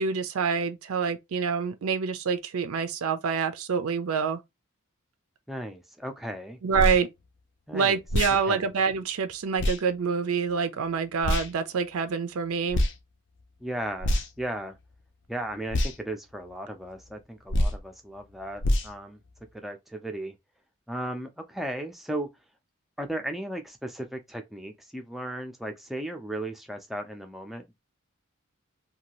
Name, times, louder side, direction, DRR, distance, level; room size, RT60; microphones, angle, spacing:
voice 1, 0.0-4.4 6.6-7.1 7.7-12.8, right 6 dB, 80° right, 0.4 m, -27 dB
voice 2, 5.5-6.6 7.7-8.0 8.5-8.7 13.6-14.8 15.3-19.2 19.5-20.4 20.9-22.3 23.0-27.8, right 1 dB, ahead, 0.4 m, -36 dB
sound 1, 6.7-7.0 8.1-8.4 9.6-9.8 11.2-11.5 12.7-13.0 14.0-14.4 15.7-15.9 17.5-17.8 18.6-18.9, left 1 dB, 55° left, 0.5 m, -25 dB
2.7 x 2.3 x 2.9 m
head